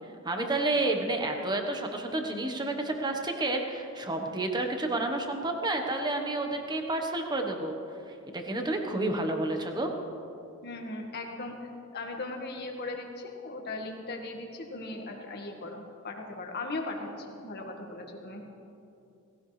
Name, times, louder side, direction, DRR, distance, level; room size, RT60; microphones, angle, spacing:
voice 1, 0.2-7.7 8.1-9.9, right 2 dB, 20° right, 3 dB, 1.3 m, -30 dB
voice 2, 10.6-18.4, left 2 dB, 50° left, 2 dB, 1.8 m, -38 dB
18.0 x 17.0 x 3.4 m, 2.7 s
head